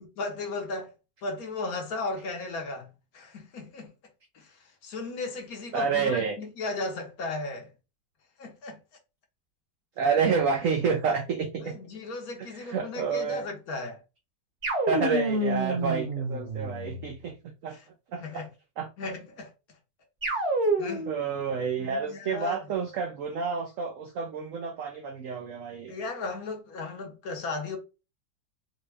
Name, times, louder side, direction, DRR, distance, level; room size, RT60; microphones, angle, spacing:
voice 1, 0.2-0.9 1.2-3.9 4.3-7.7 8.4-8.8 11.6-14.0 17.7-17.8 18.2-18.5 19.0-19.5 20.8-21.1 21.8-22.6 25.9-27.8, left 3 dB, 60° left, 1.2 m, -36 dB
voice 2, 5.7-6.4 10.0-11.7 12.4-13.5 14.7-17.8 18.1-18.4 18.8-18.9 21.1-25.9, right 5 dB, 80° right, 0.7 m, -29 dB
sound 1, 14.6-17.1 20.2-21.2, right 1 dB, 45° right, 1.1 m, -28 dB
4.1 x 2.1 x 3.3 m
omnidirectional pair, 1.9 m